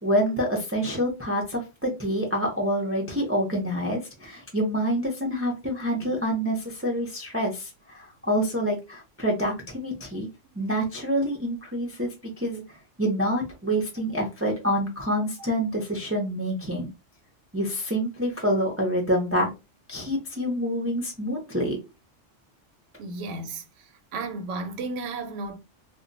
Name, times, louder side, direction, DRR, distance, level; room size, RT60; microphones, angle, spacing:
voice 1, 0.0-10.3 10.6-12.6 13.0-16.9 17.5-19.5 19.9-21.8, equal, 20° right, 0.4 m, -27 dB
voice 2, 23.0-25.6, right 3 dB, 80° right, 0.9 m, -34 dB
2.2 x 2.2 x 3.8 m
omnidirectional pair, 1.2 m